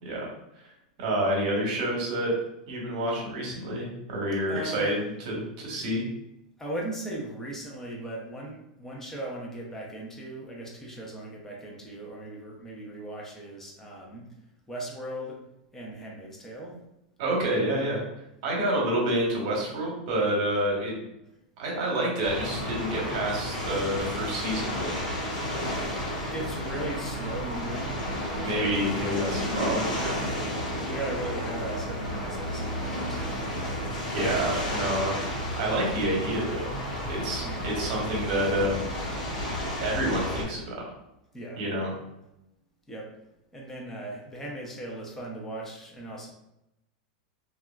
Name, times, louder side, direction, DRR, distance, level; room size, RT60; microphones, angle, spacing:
voice 1, 0.0-0.7 1.0-2.3 2.7-6.1 17.2-18.0 18.4-21.0 21.6-25.0 28.4-30.2 34.1-36.8 37.1-38.8 39.8-40.8 41.6-41.9, right 1 dB, 55° right, -2 dB, 0.9 m, -28 dB
voice 2, 4.5-5.0 6.6-14.4 14.7-15.4 15.7-16.8 26.3-28.0 28.3-28.8 29.5-29.9 30.8-33.6 37.3-37.6 41.3-41.6 42.9-43.1 43.5-46.3, right 1 dB, 10° left, -3 dB, 0.5 m, -38 dB
sound 1, 22.2-40.4, equal, 80° left, 0.9 m, -32 dB
2.8 x 2.3 x 2.3 m, 0.86 s
supercardioid pair, 155°, 4 cm